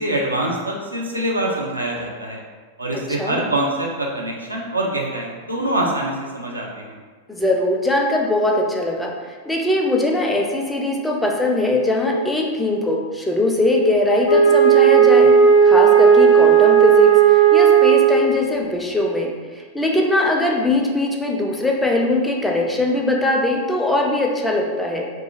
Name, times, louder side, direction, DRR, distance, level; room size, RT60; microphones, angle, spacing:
voice 1, 0.0-2.4 2.8-6.9, right 1 dB, 80° right, -1 dB, 0.4 m, -24 dB
voice 2, 2.9-3.4 7.3-25.0, left 2 dB, 5° left, -1 dB, 0.4 m, -21 dB
Wind instrument woodwind instrument, 14.2-18.5, right 7 dB, 60° left, 0.5 m, -13 dB
2.6 x 2.3 x 2.7 m, 1.5 s
figure-of-eight pair, 90°, 0 cm